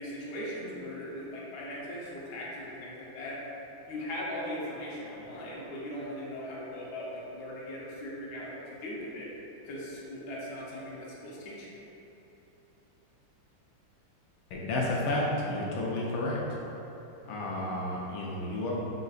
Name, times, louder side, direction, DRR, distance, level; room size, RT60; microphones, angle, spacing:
voice 1, 0.0-3.4 3.9-8.5 8.8-9.3 9.6-11.7, left 1 dB, 60° left, -6 dB, 1.2 m, -39 dB
voice 2, 14.5-16.4 17.2-18.7, left 1 dB, 80° left, -4 dB, 1.4 m, -31 dB
5.5 x 3.9 x 2.4 m, 3.0 s
omnidirectional pair, 2.2 m